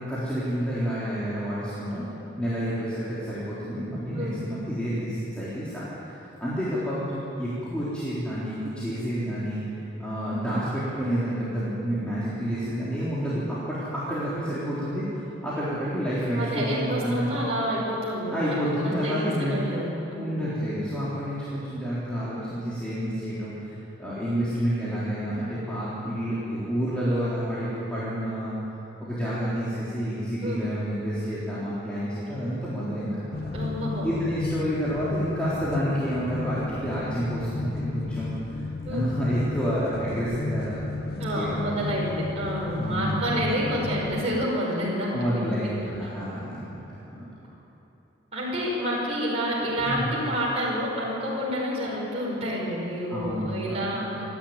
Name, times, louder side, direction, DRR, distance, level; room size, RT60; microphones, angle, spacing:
voice 1, 0.1-2.0 2.3-15.0 15.4-17.4 18.3-19.6 20.1-28.6 29.0-33.4 34.0-38.6 38.9-41.9 42.8-43.5 45.1-47.3 49.8-50.1 53.1-54.0, equal, 5° left, -11 dB, 3.8 m, -29 dB
voice 2, 16.4-18.6 18.8-20.4 30.4-30.6 33.5-34.1 38.8-39.1 41.2-45.7 46.3-46.4 48.3-54.2, equal, 30° right, -6 dB, 5.4 m, -29 dB
sound 1, 33.3-44.5, left 3 dB, 50° left, 0.6 m, -33 dB
27.5 x 11.5 x 9.6 m, 3.0 s
head